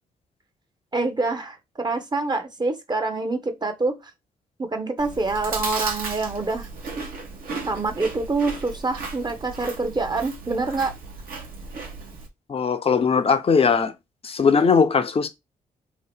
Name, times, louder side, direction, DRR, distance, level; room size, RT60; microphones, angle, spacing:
voice 1, 0.9-4.0 4.6-6.7 7.7-10.9, right 3 dB, 25° right, 0.8 m, -26 dB
Chewing mastication, 5.0-12.3, right 4 dB, 60° right, 0.9 m, -35 dB
voice 2, 12.5-13.9 14.2-15.3, left 5 dB, 35° left, 0.6 m, -19 dB
2.8 x 2.1 x 3.3 m
hypercardioid pair, 45°, 17 cm